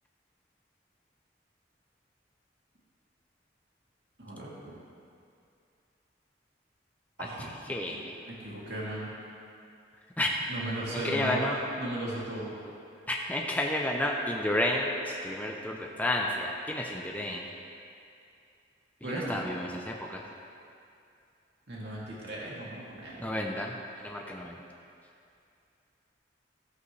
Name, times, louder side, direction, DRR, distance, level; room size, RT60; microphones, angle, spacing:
voice 1, 7.7-8.1 10.2-10.3 10.9-11.6 13.1-17.4 19.0-20.2 23.2-24.6, left 1 dB, 10° left, 0 dB, 0.6 m, -31 dB
voice 2, 8.3-9.1 10.5-11.4 11.8-12.6 19.0-19.5 21.7-23.3, right 1 dB, 65° right, -6 dB, 2.4 m, -36 dB
14.0 x 8.2 x 3.2 m, 2.5 s
head